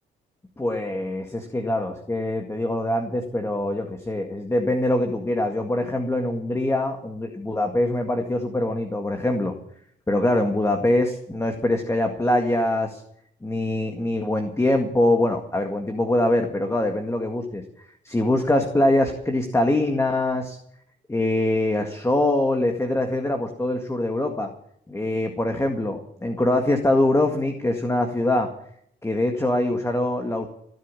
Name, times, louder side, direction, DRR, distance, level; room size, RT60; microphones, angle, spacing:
voice 1, 0.6-9.5 10.1-13.0 13.4-17.6 18.0-20.6 21.1-24.5 24.9-28.5 29.0-30.5, left 1 dB, 15° left, 4 dB, 1.9 m, -23 dB
17.0 x 7.7 x 9.9 m, 0.71 s
cardioid pair, 90°, 20 cm